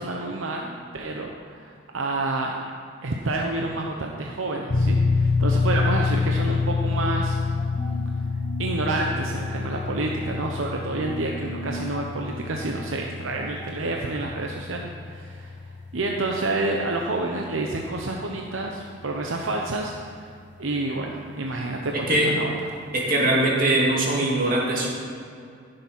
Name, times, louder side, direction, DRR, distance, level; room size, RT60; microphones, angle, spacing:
voice 1, 0.0-2.6 3.0-7.4 8.6-15.5 15.9-22.5, right 2 dB, 90° right, 0 dB, 0.9 m, -29 dB
sound 1, 4.7-19.1, left 4 dB, 60° left, 0.7 m, -28 dB
sound 2, 6.9-13.7, right 2 dB, 20° left, 1.1 m, -41 dB
voice 2, 22.9-24.9, right 1 dB, 45° right, -3 dB, 2.4 m, -21 dB
14.5 x 6.8 x 5.5 m, 2.4 s
head